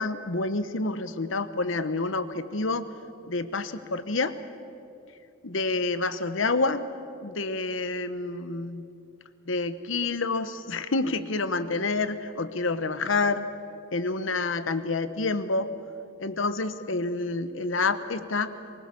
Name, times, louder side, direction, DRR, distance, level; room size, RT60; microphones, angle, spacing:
voice 1, 0.0-2.9 3.3-4.3 5.4-6.9 7.2-8.9 9.5-13.5 13.9-15.7 16.2-18.5, left 3 dB, 65° left, 12 dB, 1.0 m, -28 dB
24.0 x 20.5 x 7.0 m, 2.7 s
head